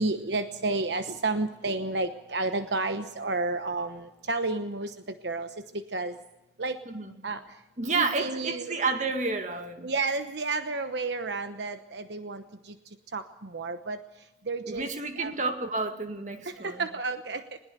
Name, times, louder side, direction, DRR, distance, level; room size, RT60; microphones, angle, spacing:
voice 1, 0.0-4.9 5.2-5.5 5.9-6.1 6.6-6.8 7.2-7.4 7.9-8.7 9.8-12.4 13.1-13.2 13.5-14.0 14.5-14.9 15.2-15.3 16.6-17.6, right 3 dB, 70° right, 9 dB, 1.0 m, -31 dB
voice 2, 7.8-9.9 14.7-16.9, right 3 dB, 40° right, 6 dB, 2.1 m, -30 dB
21.0 x 19.5 x 6.9 m, 1.0 s
head